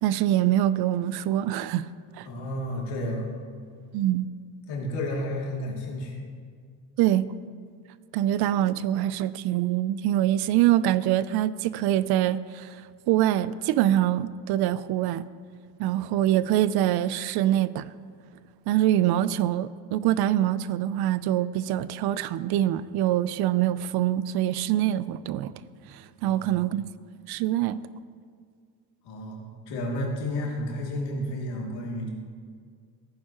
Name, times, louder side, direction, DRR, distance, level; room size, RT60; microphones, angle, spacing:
voice 1, 0.0-1.9 2.2-2.3 3.9-4.3 7.0-7.2 8.1-12.8 13.1-15.2 15.8-17.9 18.7-25.5 25.9-26.9 27.3-27.8, right 12 dB, 70° right, 0.5 m, -24 dB
voice 2, 2.3-3.3 4.7-6.1 26.2-26.6 29.0-32.1, left 1 dB, 85° left, 2.7 m, -32 dB
15.5 x 9.3 x 3.0 m
cardioid pair, 140°, 40 cm